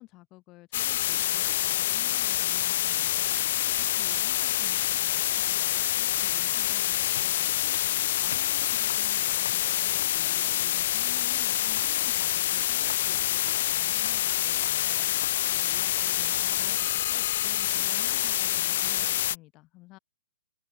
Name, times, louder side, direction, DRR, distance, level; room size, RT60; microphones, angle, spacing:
voice 1, 0.0-20.0, left 20 dB, 25° left, 7.8 m, -51 dB
sound 1, 0.7-19.4, left 13 dB, 45° left, 0.7 m, -26 dB
sound 2, 7.1-16.4, left 6 dB, 80° left, 5.8 m, -48 dB
open air
hypercardioid pair, 160°, 0 cm